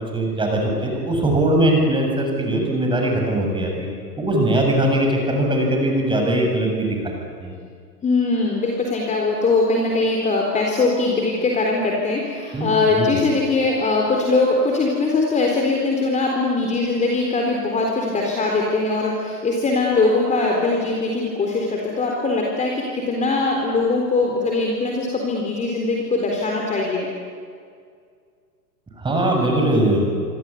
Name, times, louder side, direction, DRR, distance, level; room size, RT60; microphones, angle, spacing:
voice 1, 0.1-3.9 4.2-7.5 12.5-13.2 29.0-30.1, right 1 dB, 10° right, 1 dB, 7.3 m, -21 dB
voice 2, 8.0-27.1, left 3 dB, 15° left, 0 dB, 4.0 m, -21 dB
27.0 x 26.0 x 8.5 m, 2.1 s
figure-of-eight pair, 105°, 50 cm